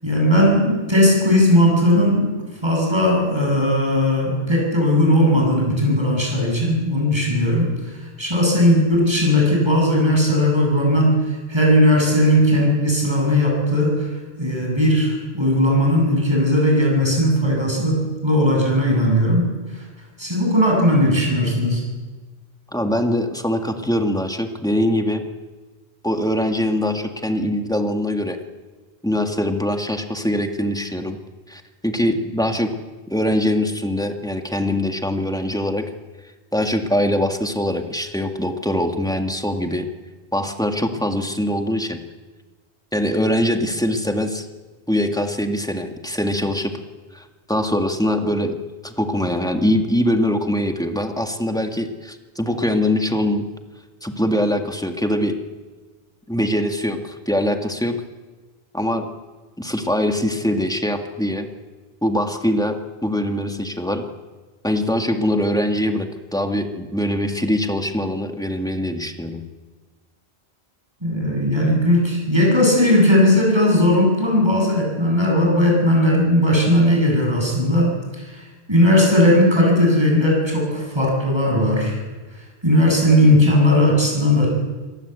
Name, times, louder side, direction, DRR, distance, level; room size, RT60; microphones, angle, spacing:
voice 1, 0.0-2.3 2.6-19.8 20.2-21.8 71.0-82.0 82.6-84.5, left 1 dB, 25° right, -1 dB, 8.2 m, -17 dB
voice 2, 22.7-25.2 26.0-28.4 29.0-31.2 31.5-32.7 33.1-35.9 36.5-39.9 40.3-42.0 42.9-44.5 44.9-46.7 47.1-48.6 48.8-53.5 54.0-55.4 56.3-57.9 58.7-59.1 59.6-61.5 62.0-62.7 63.0-64.0 64.6-69.4, left 1 dB, 5° left, 5 dB, 2.0 m, -22 dB
26.5 x 18.5 x 8.3 m, 1.3 s
omnidirectional pair, 1.1 m